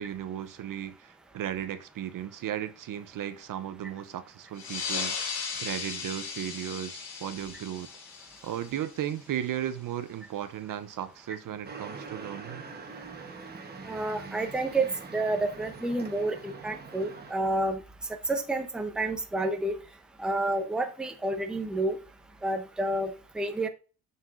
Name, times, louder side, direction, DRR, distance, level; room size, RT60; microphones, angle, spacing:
voice 1, 0.0-7.9 8.4-12.6, right 10 dB, 50° right, 0.6 m, -35 dB
sound 1, 4.6-9.6, left 5 dB, 65° left, 1.5 m, -37 dB
sound 2, 11.6-17.3, right 4 dB, 20° right, 1.0 m, -43 dB
voice 2, 13.9-17.8 18.3-19.7 20.2-22.0 22.4-23.7, right 2 dB, ahead, 0.6 m, -29 dB
7.3 x 5.7 x 2.5 m
cardioid pair, 135°, 44 cm